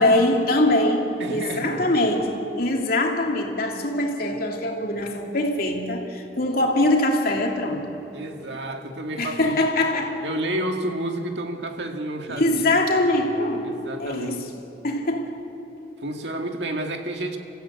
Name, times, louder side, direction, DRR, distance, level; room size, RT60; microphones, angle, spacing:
voice 1, 0.0-7.9 9.2-10.2 12.3-14.5 14.8-15.5, left 1 dB, 60° left, 2.8 m, -23 dB
voice 2, 1.2-1.8 8.1-9.6 10.2-12.8 13.6-14.4 16.0-17.4, right 1 dB, 75° right, 2.1 m, -30 dB
30.0 x 15.0 x 8.4 m
head